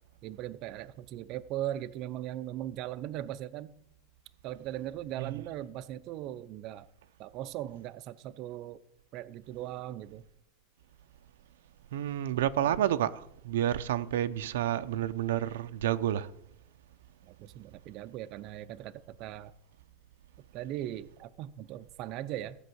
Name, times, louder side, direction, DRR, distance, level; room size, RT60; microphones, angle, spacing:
voice 1, 0.2-3.7 4.4-6.9 7.2-8.8 9.1-10.2 17.2-19.5 20.5-22.6, right 13 dB, 45° right, 0.5 m, -39 dB
voice 2, 11.9-16.3, right 11 dB, 90° right, 0.6 m, -30 dB
15.0 x 5.4 x 7.8 m
supercardioid pair, 145°, 0 cm